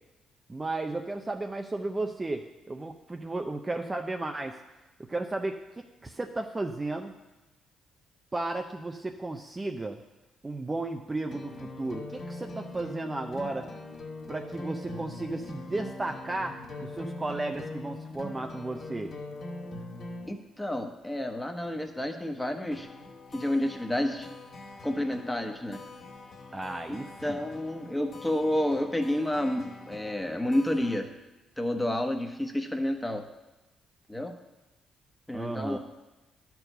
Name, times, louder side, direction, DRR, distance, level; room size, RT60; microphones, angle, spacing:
voice 1, 0.5-4.6 5.0-5.6 6.0-7.1 8.3-10.0 10.4-13.7 14.3-19.1 26.5-27.4 35.3-35.8, right 2 dB, 20° right, 4 dB, 0.5 m, -34 dB
sound 1, 11.3-20.3 22.7-31.0, left 2 dB, 55° left, 1.9 m, -43 dB
voice 2, 20.3-22.9 23.3-24.3 24.8-25.8 26.9-31.1 31.6-33.2 34.1-34.3 35.3-35.8, left 1 dB, 10° left, 5 dB, 1.1 m, -30 dB
10.5 x 4.7 x 6.6 m, 1.0 s
cardioid pair, 90°, 0 cm